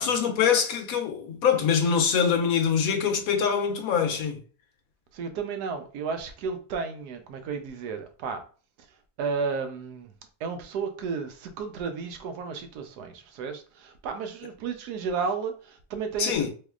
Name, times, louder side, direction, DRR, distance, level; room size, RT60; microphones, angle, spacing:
voice 1, 0.0-4.4 16.2-16.5, left 7 dB, 70° left, 1.1 m, -24 dB
voice 2, 5.1-8.4 9.2-10.1 10.4-16.5, right 5 dB, 90° right, 1.2 m, -33 dB
3.5 x 3.0 x 2.4 m
omnidirectional pair, 1.6 m